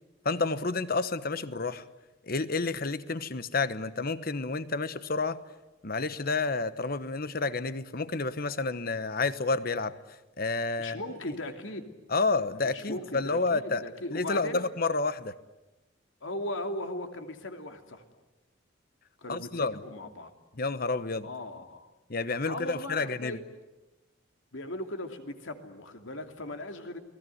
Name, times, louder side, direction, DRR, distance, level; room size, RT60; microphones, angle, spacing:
voice 1, 0.2-1.8 2.3-5.4 5.8-10.0 10.4-11.0 11.3-11.4 12.1-13.8 14.1-15.3 19.3-19.8 20.6-21.3 22.1-23.4, left 3 dB, 50° left, 14 dB, 1.1 m, -30 dB
voice 2, 10.8-11.9 12.6-14.6 16.2-18.0 19.2-20.3 21.2-21.9 22.4-23.6 24.5-27.0, left 1 dB, 80° left, 6 dB, 2.8 m, -38 dB
29.5 x 20.0 x 9.4 m, 1.0 s
head